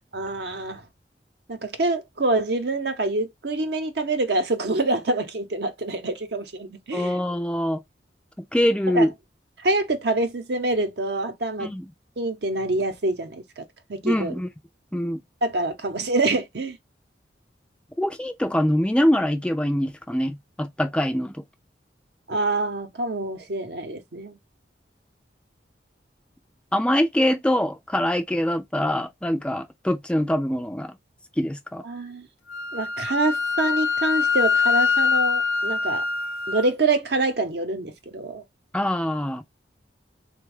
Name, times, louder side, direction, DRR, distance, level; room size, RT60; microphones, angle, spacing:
voice 1, 0.1-0.8 1.5-7.1 8.9-9.1 9.6-11.7 12.2-13.6 13.9-14.3 15.4-16.8 22.3-24.4 31.8-32.3 32.7-36.0 36.5-38.4, right 2 dB, 65° right, 0.7 m, -26 dB
voice 2, 6.9-7.8 8.5-9.1 11.6-11.9 14.0-14.5 14.9-15.2 18.0-21.3 26.7-30.9 31.4-31.8 38.7-39.4, equal, 5° left, 0.3 m, -24 dB
Wind instrument woodwind instrument, 32.5-36.7, left 5 dB, 80° left, 0.6 m, -24 dB
3.4 x 2.2 x 3.2 m
head